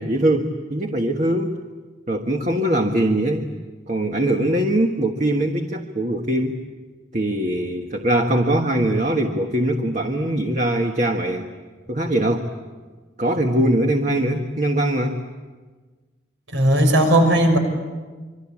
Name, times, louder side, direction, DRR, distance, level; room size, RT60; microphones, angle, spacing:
voice 1, 0.0-1.5 2.1-3.4 3.9-6.6 7.1-11.5 11.9-12.5 13.2-15.2, right 1 dB, 40° right, 3 dB, 1.5 m, -21 dB
voice 2, 16.5-17.6, right 1 dB, 80° right, 5 dB, 6.1 m, -16 dB
27.0 x 24.5 x 8.6 m, 1.4 s
head